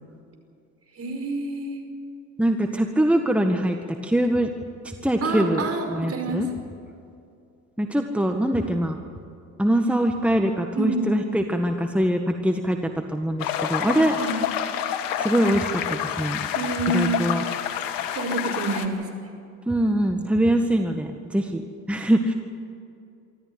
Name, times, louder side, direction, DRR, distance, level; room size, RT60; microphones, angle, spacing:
voice 1, 0.9-1.8 5.2-6.5 10.7-11.1 14.2-14.4 16.5-17.2 18.1-19.1, right 2 dB, 40° right, 4 dB, 5.4 m, -27 dB
voice 2, 2.4-3.8 4.0-4.5 4.8-6.5 7.8-9.0 9.6-14.2 15.2-16.4 16.9-17.4 19.7-22.3, right 1 dB, 5° right, 5 dB, 1.7 m, -23 dB
sound 1, 13.4-18.9, left 9 dB, 70° left, 1.9 m, -28 dB
25.0 x 13.5 x 9.7 m, 2.5 s
hypercardioid pair, 65°, 36 cm